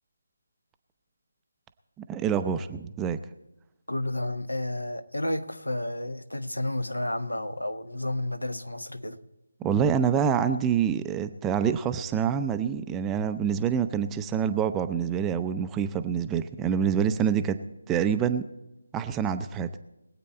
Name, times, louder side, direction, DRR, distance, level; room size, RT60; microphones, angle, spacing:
voice 1, 2.1-3.2 9.6-17.6 17.9-18.4 18.9-19.7, right 7 dB, 10° right, 0.5 m, -26 dB
voice 2, 3.9-9.2, left 1 dB, 85° left, 1.1 m, -31 dB
22.0 x 8.4 x 4.3 m
figure-of-eight pair, 155°, 0 cm